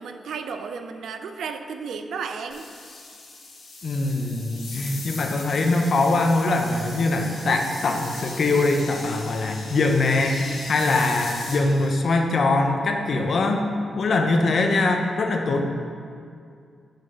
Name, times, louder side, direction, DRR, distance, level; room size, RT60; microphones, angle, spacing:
voice 1, 0.0-2.6, right 5 dB, 85° right, 7 dB, 0.5 m, -33 dB
sound 1, 2.5-11.9, left 3 dB, 75° left, 1.8 m, -39 dB
voice 2, 3.8-13.6 14.0-15.6, left 2 dB, 50° left, 3 dB, 0.7 m, -22 dB
5.8 x 5.5 x 6.3 m, 2.3 s
wide cardioid pair, 155°, 0 cm